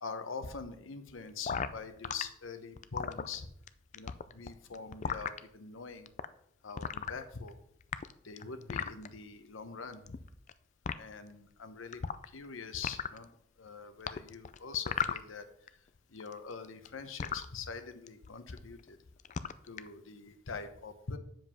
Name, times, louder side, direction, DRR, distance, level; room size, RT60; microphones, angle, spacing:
voice 1, 0.0-3.5 3.9-6.1 6.6-7.5 8.2-10.2 11.0-12.0 12.3-13.3 13.6-15.4 16.1-19.0 19.6-21.2, left 5 dB, 90° left, 10 dB, 0.8 m, -43 dB
sound 1, 1.5-2.2 2.8-3.7 3.9-5.4 6.1-6.3 6.8-7.5 7.8-9.1 9.9-10.5 10.9-11.0 11.9-12.5 12.7-13.2 14.1-15.7 16.0-17.5 18.1-18.3 18.6-18.9 19.2-19.9, left 7 dB, 35° left, 0.3 m, -36 dB
7.2 x 5.2 x 5.6 m, 0.71 s
head